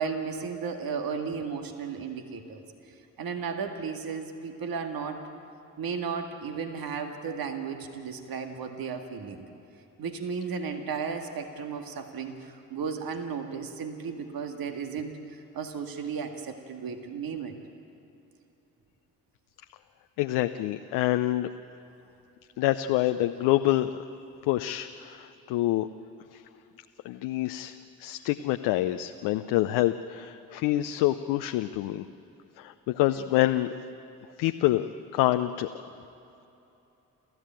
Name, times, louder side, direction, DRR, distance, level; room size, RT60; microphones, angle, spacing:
voice 1, 0.0-5.3 5.8-9.5 10.0-17.6, right 6 dB, 60° right, 5 dB, 2.1 m, -34 dB
voice 2, 20.2-21.5 22.6-23.9 24.5-25.9 26.3-26.4 27.0-27.7 28.0-32.1 32.6-33.7 34.4-35.7, left 15 dB, 75° left, 8 dB, 0.7 m, -26 dB
29.5 x 14.0 x 9.0 m, 2.9 s
hypercardioid pair, 45°, 40 cm